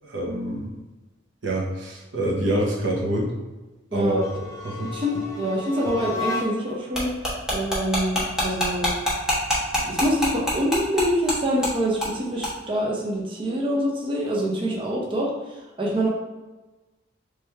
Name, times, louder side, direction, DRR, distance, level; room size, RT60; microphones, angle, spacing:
voice 1, 0.0-0.7 1.4-3.3 3.9-4.3 4.6-4.9, right 1 dB, 85° right, -2 dB, 0.9 m, -26 dB
sound 1, 4.1-6.8, left 2 dB, 20° left, 0.6 m, -33 dB
voice 2, 4.9-7.1 7.5-8.9 9.7-15.3 15.8-16.1, equal, 30° right, -3 dB, 0.7 m, -25 dB
sound 2, 6.9-11.4 11.6-11.7 12.0-12.1 12.4-12.5, equal, 5° right, 1.1 m, -24 dB
3.3 x 3.1 x 3.4 m, 1.1 s
head